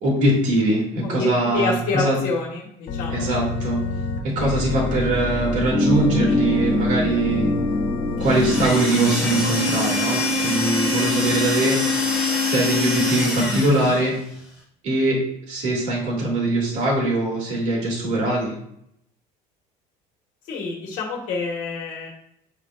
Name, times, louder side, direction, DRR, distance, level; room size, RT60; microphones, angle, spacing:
voice 1, 0.0-2.1 3.1-3.8 4.2-7.5 8.2-11.8 12.4-14.1 14.8-15.2 15.5-18.5, right 2 dB, 45° right, -3 dB, 2.5 m, -22 dB
voice 2, 1.0-3.3 20.5-22.1, left 3 dB, 50° left, -1 dB, 1.6 m, -27 dB
Organ, 2.9-8.7, left 3 dB, 65° left, 1.3 m, -28 dB
sound 1, 5.7-12.6, left 2 dB, 30° left, 2.8 m, -26 dB
sound 2, 8.2-14.1, left 2 dB, 5° right, 1.9 m, -24 dB
9.8 x 5.1 x 2.5 m, 0.73 s
cardioid pair, 170°, 17 cm